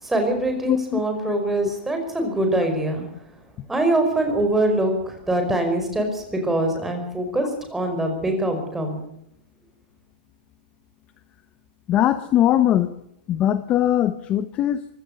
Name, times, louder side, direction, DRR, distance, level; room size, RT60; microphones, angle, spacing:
voice 1, 0.0-3.0 3.7-9.0, right 1 dB, 5° right, 4 dB, 5.1 m, -23 dB
voice 2, 0.7-1.0 11.9-12.9 13.3-14.8, left 12 dB, 20° left, 12 dB, 0.9 m, -20 dB
24.0 x 17.0 x 6.6 m, 0.76 s
hypercardioid pair, 165°, 5 cm